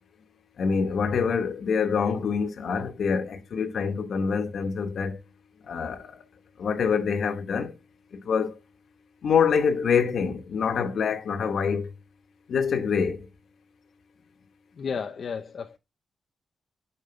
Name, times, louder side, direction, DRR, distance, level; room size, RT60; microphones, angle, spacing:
voice 1, 0.6-5.2 5.6-6.2 6.6-7.8 8.1-8.6 9.2-11.9 12.5-13.3, left 6 dB, 70° left, 1.1 m, -26 dB
voice 2, 14.8-15.8, left 6 dB, 55° left, 0.5 m, -32 dB
6.4 x 5.5 x 3.2 m
wide cardioid pair, 150°, 0 cm